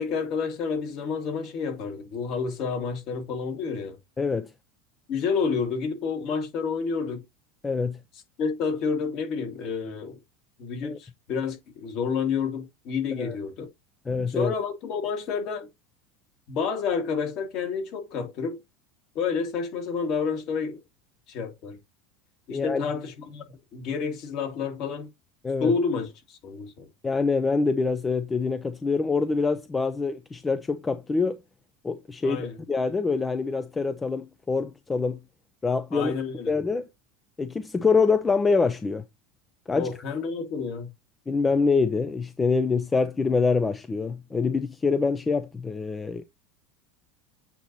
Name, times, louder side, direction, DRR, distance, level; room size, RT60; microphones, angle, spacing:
voice 1, 0.0-4.0 5.1-7.2 8.4-10.2 10.6-13.7 14.3-15.7 16.5-18.6 19.2-20.8 21.3-21.8 22.5-25.1 25.6-26.9 32.2-32.6 35.9-36.5 39.7-40.9, left 5 dB, 50° left, 2.1 m, -29 dB
voice 2, 4.2-4.5 7.6-8.0 10.8-11.0 13.2-13.4 14.1-14.5 22.5-22.9 25.4-25.7 27.0-31.4 31.8-35.2 35.6-36.2 36.5-36.9 37.4-39.0 39.7-39.9 41.3-46.2, left 4 dB, 15° left, 0.5 m, -25 dB
8.2 x 2.9 x 4.0 m
supercardioid pair, 135°, 0 cm